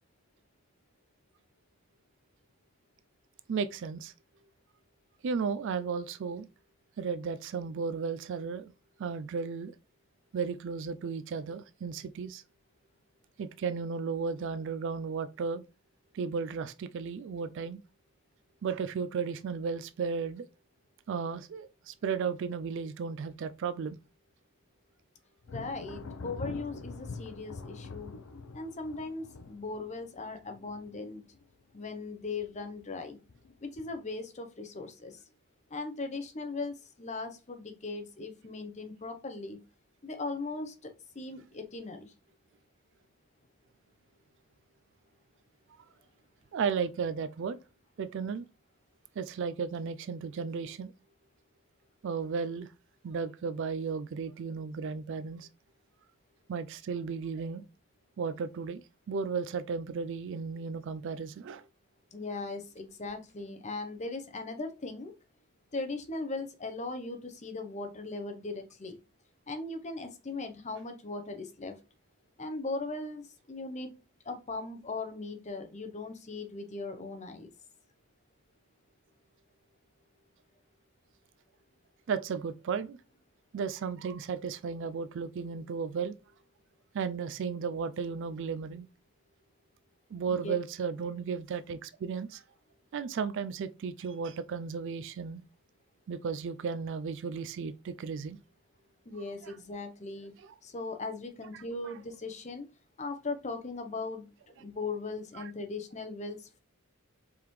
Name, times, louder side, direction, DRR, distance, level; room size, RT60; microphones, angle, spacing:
voice 1, 3.5-4.1 5.2-6.5 7.0-8.7 9.0-9.7 10.3-12.4 13.4-15.6 16.1-17.8 18.6-20.5 21.1-24.0 46.5-47.6 48.0-48.5 49.2-50.9 52.0-52.7 53.0-55.5 56.5-57.6 58.2-61.6 82.1-83.0 83.5-86.2 86.9-88.9 90.1-92.4 92.9-95.4 96.1-98.4 99.4-99.5 100.4-100.5 101.5-101.9 105.3-105.4, right 5 dB, 55° right, 0.3 m, -34 dB
Thunder, 25.4-31.9 32.2-32.8 33.3-34.1, left 3 dB, 65° left, 0.6 m, -44 dB
voice 2, 25.5-28.1 28.5-31.2 31.7-33.2 33.6-35.2 35.7-39.6 40.0-42.1 62.1-65.1 65.7-68.9 69.5-71.7 72.4-73.9 74.2-77.5 90.4-90.6 99.1-100.3 100.6-102.7 103.0-104.3 104.6-106.6, left 3 dB, 35° left, 0.8 m, -38 dB
4.7 x 3.6 x 3.1 m
head